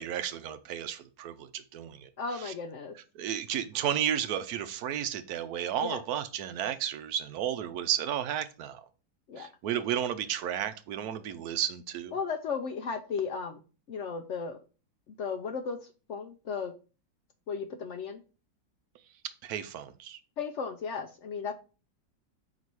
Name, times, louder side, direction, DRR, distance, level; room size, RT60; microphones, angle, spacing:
voice 1, 0.0-2.1 2.4-2.5 3.2-8.8 9.4-12.1 19.4-20.2, right 10 dB, 65° right, 1.1 m, -33 dB
voice 2, 2.2-2.9 5.8-6.0 9.3-9.5 12.1-13.6 13.9-14.6 15.2-16.7 17.5-18.2 20.4-21.5, left 5 dB, 70° left, 0.7 m, -35 dB
5.2 x 4.1 x 4.6 m
omnidirectional pair, 1.9 m